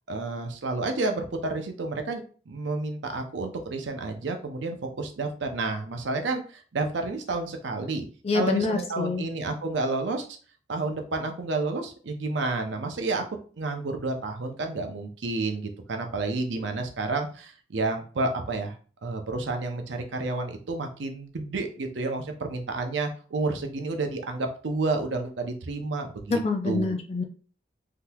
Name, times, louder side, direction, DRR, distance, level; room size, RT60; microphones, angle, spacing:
voice 1, 0.1-8.0 8.3-10.3 10.7-13.2 13.6-18.7 19.0-26.4 26.7-27.0, right 3 dB, 85° right, 5 dB, 0.6 m, -30 dB
voice 2, 8.2-9.3 26.3-27.2, left 3 dB, 35° left, 4 dB, 0.4 m, -26 dB
3.6 x 2.8 x 2.3 m, 0.40 s
head